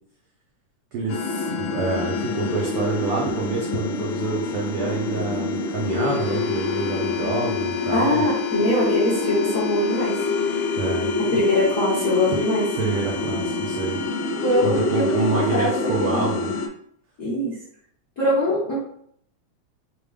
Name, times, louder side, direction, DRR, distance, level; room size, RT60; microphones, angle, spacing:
voice 1, 0.9-8.2 10.8-11.1 12.8-14.0 14.6-16.5, right 4 dB, 90° right, -2 dB, 1.2 m, -27 dB
sound 1, 1.1-16.7, left 3 dB, 80° left, 1.7 m, -26 dB
voice 2, 7.9-10.2 11.3-12.7 14.4-16.3 17.2-17.6 18.2-18.8, left 1 dB, 60° left, -9 dB, 0.8 m, -22 dB
5.0 x 2.3 x 3.3 m, 0.67 s
omnidirectional pair, 3.4 m